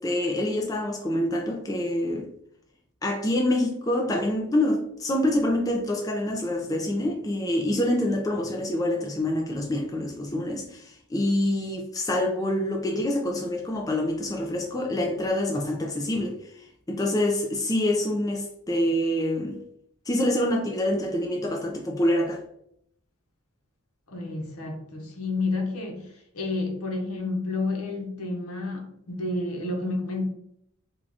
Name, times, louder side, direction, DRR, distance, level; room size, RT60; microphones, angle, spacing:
voice 1, 0.0-2.3 3.0-16.5 16.9-19.6 20.1-22.4, left 1 dB, 15° left, 0.4 m, -26 dB
voice 2, 24.1-30.2, left 2 dB, 85° left, 0.9 m, -30 dB
3.8 x 2.4 x 3.4 m
head